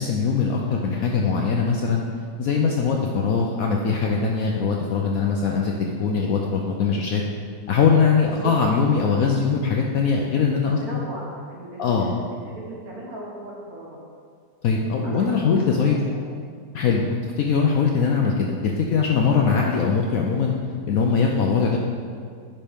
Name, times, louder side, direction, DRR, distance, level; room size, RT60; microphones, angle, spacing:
voice 1, 0.0-2.0 2.4-7.2 7.7-11.0 11.8-12.1 14.6-16.0 16.7-20.5 20.9-21.8, left 5 dB, 70° left, 0 dB, 0.8 m, -21 dB
voice 2, 10.8-14.0 15.0-16.3, right 1 dB, 55° right, -3 dB, 1.7 m, -37 dB
10.5 x 4.3 x 3.5 m, 2.1 s
omnidirectional pair, 1.9 m